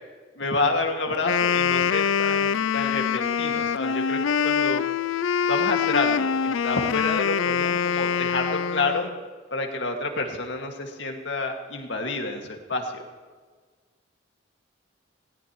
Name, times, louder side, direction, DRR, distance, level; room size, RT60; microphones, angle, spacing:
voice 1, 0.4-4.8 5.5-9.1 9.5-13.1, left 3 dB, 70° left, 2 dB, 2.1 m, -29 dB
Wind instrument woodwind instrument, 1.1-9.2, left 7 dB, 85° left, 0.4 m, -24 dB
20.5 x 18.5 x 3.1 m, 1.5 s
head